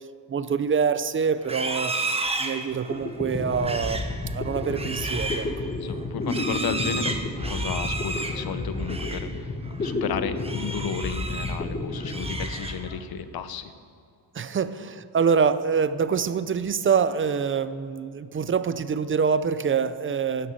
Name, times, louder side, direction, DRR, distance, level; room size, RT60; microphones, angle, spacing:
voice 1, 0.3-5.5 14.3-20.5, right 6 dB, 30° right, 14 dB, 0.5 m, -25 dB
Livestock farm animals working animals, 1.4-9.3 9.6-9.9 10.4-11.6 11.9-13.0, right 3 dB, 15° right, 1.0 m, -33 dB
sound 1, 2.6-2.7 2.9-13.4, left 2 dB, 20° left, 1.7 m, -31 dB
voice 2, 5.7-9.5 9.8-13.7, left 7 dB, 55° left, 11 dB, 1.1 m, -33 dB
12.5 x 11.0 x 9.0 m, 2.3 s
cardioid pair, 155°, 44 cm